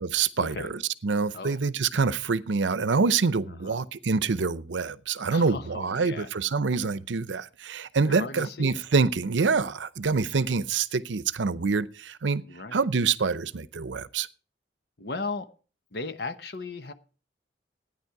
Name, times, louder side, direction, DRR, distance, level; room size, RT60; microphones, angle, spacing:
voice 1, 0.0-12.4 12.7-14.3, right 4 dB, 85° right, 0.6 m, -26 dB
voice 2, 3.5-3.8 5.3-6.3 8.0-8.8 12.5-12.8 15.0-15.5 15.9-16.9, left 3 dB, 60° left, 0.9 m, -36 dB
13.5 x 9.7 x 4.7 m
head